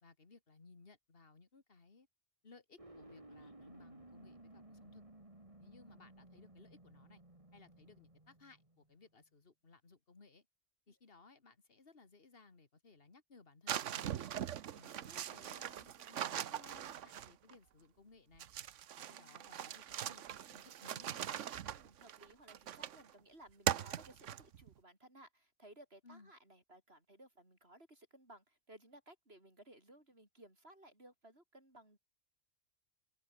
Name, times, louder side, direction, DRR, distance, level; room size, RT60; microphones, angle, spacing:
voice 1, 0.0-2.1 2.4-5.0 5.6-7.2 7.5-10.5 10.9-14.3 14.7-18.5 18.9-21.3 26.0-26.3, left 4 dB, 45° left, 2.5 m, -62 dB
sound 1, 2.8-9.0, right 1 dB, 25° right, 3.7 m, -58 dB
sound 2, 13.7-17.5 18.4-23.1 23.7-24.7, right 10 dB, 70° right, 1.1 m, -41 dB
voice 2, 19.0-19.6 21.7-32.0, right 1 dB, 50° right, 7.8 m, -60 dB
omnidirectional pair, 1.4 m